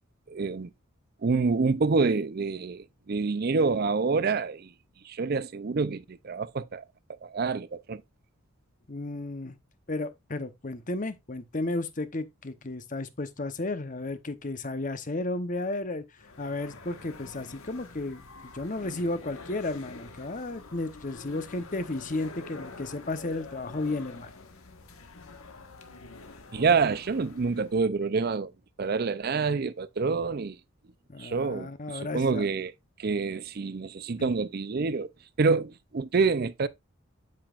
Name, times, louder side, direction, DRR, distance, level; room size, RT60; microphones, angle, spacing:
voice 1, 0.3-0.7 1.2-4.7 5.0-6.8 7.2-8.0 26.5-28.5 28.8-30.6 31.2-32.7 33.0-35.1 35.4-36.7, right 4 dB, 45° right, 0.4 m, -27 dB
voice 2, 8.9-9.6 9.9-16.0 16.4-24.3 31.1-32.4 34.2-34.3, left 2 dB, 40° left, 0.9 m, -33 dB
sound 1, 16.2-27.8, left 3 dB, 80° left, 1.4 m, -47 dB
8.6 x 8.0 x 2.4 m
head